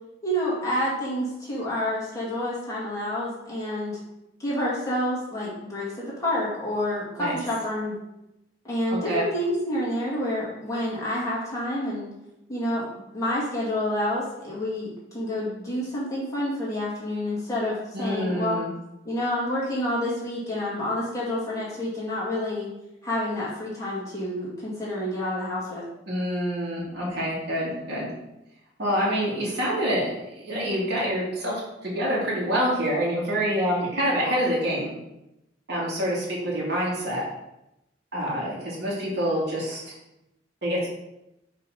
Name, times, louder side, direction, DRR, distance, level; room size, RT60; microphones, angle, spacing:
voice 1, 0.2-4.0 4.4-8.0 8.6-12.1 12.5-18.6 19.0-22.7 23.0-25.8, left 1 dB, 20° left, -8 dB, 2.3 m, -28 dB
voice 2, 8.9-9.2 17.9-18.7 26.1-28.1 28.8-31.5 31.8-34.9 35.7-37.3 38.1-39.9 40.6-40.9, equal, 65° right, -5 dB, 2.4 m, -26 dB
5.4 x 3.7 x 5.6 m, 0.90 s
head